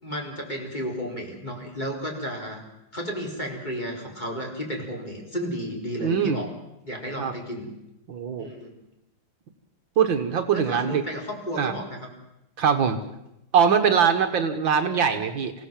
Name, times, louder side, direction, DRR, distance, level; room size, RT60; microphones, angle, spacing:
voice 1, 0.0-2.6 2.9-6.5 6.8-7.7 8.4-8.8 10.5-12.1, equal, 20° left, 0 dB, 4.5 m, -33 dB
voice 2, 6.0-6.4 7.2-7.3 8.1-8.5 10.0-11.0 11.6-11.7 12.6-13.0 13.5-15.5, right 7 dB, 65° right, 7 dB, 2.1 m, -22 dB
27.5 x 16.5 x 7.6 m, 0.87 s
omnidirectional pair, 2.3 m